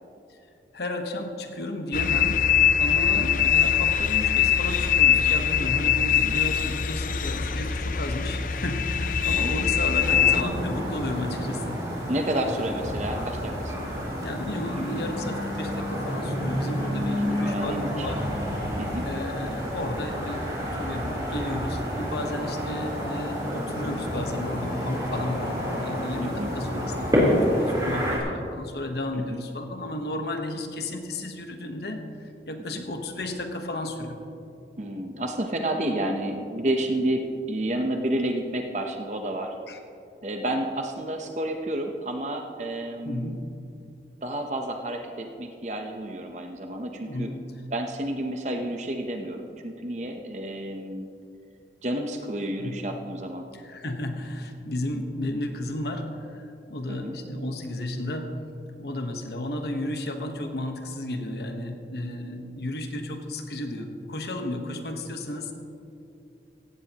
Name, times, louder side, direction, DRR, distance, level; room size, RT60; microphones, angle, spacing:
voice 1, 0.7-2.5 2.8-11.8 14.2-18.3 19.0-34.2 39.7-39.8 43.0-43.4 47.1-47.5 52.6-52.8 53.5-58.3 58.8-65.5, left 1 dB, 65° left, 5 dB, 1.2 m, -33 dB
sound 1, 1.9-10.4, left 8 dB, 50° left, 0.5 m, -22 dB
voice 2, 3.1-3.5 6.1-6.4 9.2-9.5 12.1-14.1 14.8-15.0 17.1-18.1 18.8-19.1 26.2-26.5 29.1-29.4 32.7-32.8 34.8-39.5 40.2-43.4 44.2-47.3 47.7-51.1 51.8-53.4 56.9-57.2, right 1 dB, 40° right, 4 dB, 0.8 m, -30 dB
sound 2, 10.0-28.2, equal, 25° right, 3.6 m, -29 dB
17.0 x 15.5 x 3.0 m, 2.6 s
head